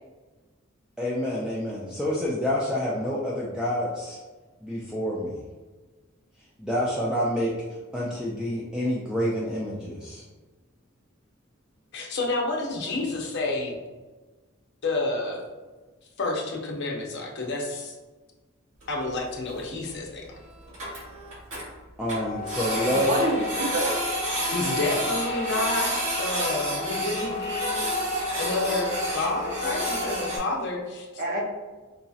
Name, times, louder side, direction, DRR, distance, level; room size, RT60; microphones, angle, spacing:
voice 1, 1.0-4.2 4.6-5.4 6.6-7.5 7.9-10.2 22.0-23.2, equal, 5° right, -6 dB, 0.3 m, -28 dB
voice 2, 11.9-13.8 14.8-15.4 16.2-17.9 18.9-20.3 24.5-27.8 28.4-31.1, left 2 dB, 55° left, -1 dB, 0.6 m, -29 dB
Printer, 18.8-18.9 19.1-19.2 19.6-19.7 19.9-20.0 20.3-20.4 20.6-21.6 22.1-30.4, equal, 65° right, 1.3 m, -29 dB
voice 3, 22.7-24.0 24.4-24.8 25.3-25.4 31.2-31.4, right 1 dB, 45° right, -1 dB, 0.6 m, -29 dB
3.9 x 2.7 x 2.3 m, 1.3 s
head